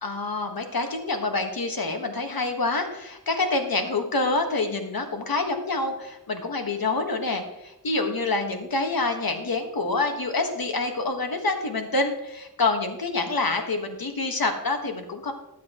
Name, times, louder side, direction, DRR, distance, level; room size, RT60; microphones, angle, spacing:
voice 1, 0.0-15.3, left 3 dB, 65° left, 5 dB, 1.5 m, -27 dB
14.5 x 10.5 x 3.0 m, 0.87 s
wide cardioid pair, 85°, 38 cm